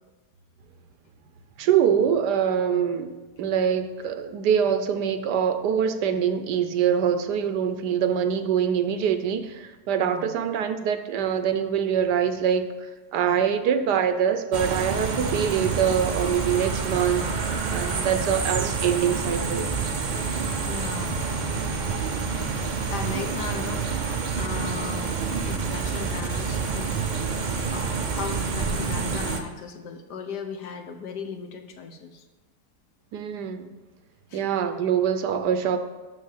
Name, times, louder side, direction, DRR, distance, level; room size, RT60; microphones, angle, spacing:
voice 1, 1.6-17.2 17.7-19.7 33.1-33.7 34.3-35.8, right 8 dB, 85° right, 9 dB, 1.3 m, -24 dB
voice 2, 10.0-10.3 15.1-15.4 18.1-18.3 20.6-21.3 22.9-25.2 25.5-26.9 27.6-32.2 34.3-34.4, left 5 dB, 80° left, 5 dB, 1.5 m, -37 dB
sound 1, 14.5-29.4, right 5 dB, 45° right, 0.6 m, -28 dB
6.5 x 6.4 x 7.2 m, 1.3 s
omnidirectional pair, 1.8 m